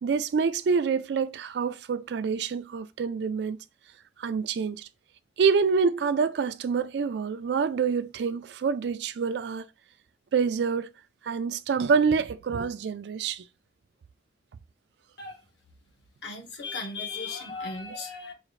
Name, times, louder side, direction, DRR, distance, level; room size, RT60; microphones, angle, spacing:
voice 1, 0.0-3.6 4.2-4.9 5.4-9.6 10.3-10.9 11.2-13.4, right 5 dB, 70° right, 0.3 m, -26 dB
voice 2, 16.2-18.3, left 4 dB, 80° left, 1.3 m, -36 dB
4.7 x 2.4 x 3.1 m
head